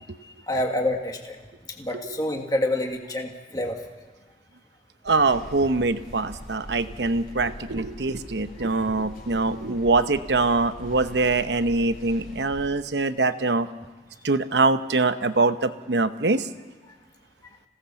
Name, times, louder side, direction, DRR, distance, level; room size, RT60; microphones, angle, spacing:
voice 1, 0.5-1.4 1.8-3.8 8.7-8.8, left 1 dB, 20° left, 2 dB, 1.8 m, -27 dB
sound 1, 5.1-12.7, equal, 55° left, 5.1 m, -43 dB
voice 2, 5.1-13.7 14.2-16.4, right 3 dB, 85° right, 11 dB, 1.0 m, -23 dB
26.5 x 17.5 x 7.1 m, 1.4 s
head